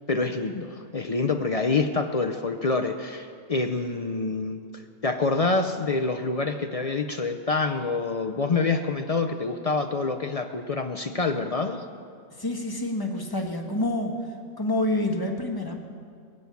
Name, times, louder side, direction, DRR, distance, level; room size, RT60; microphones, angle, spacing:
voice 1, 0.1-11.8, left 3 dB, 60° left, 5 dB, 0.3 m, -27 dB
voice 2, 12.3-14.3 14.6-15.8, left 1 dB, 15° left, 2 dB, 1.4 m, -27 dB
23.0 x 7.8 x 7.1 m, 2.3 s
omnidirectional pair, 1.5 m